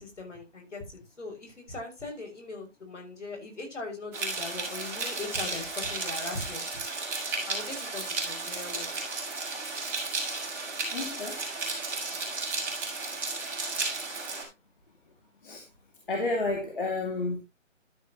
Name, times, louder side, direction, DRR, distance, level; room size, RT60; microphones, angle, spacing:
voice 1, 0.0-6.6 7.5-9.0, left 3 dB, 60° left, 6.2 m, -40 dB
sound 1, 4.1-14.4, right 3 dB, 5° right, 2.4 m, -33 dB
voice 2, 10.9-11.4 15.4-15.6 16.1-17.4, left 2 dB, 40° left, 2.4 m, -30 dB
12.5 x 8.4 x 3.0 m
hypercardioid pair, 175°, 39 cm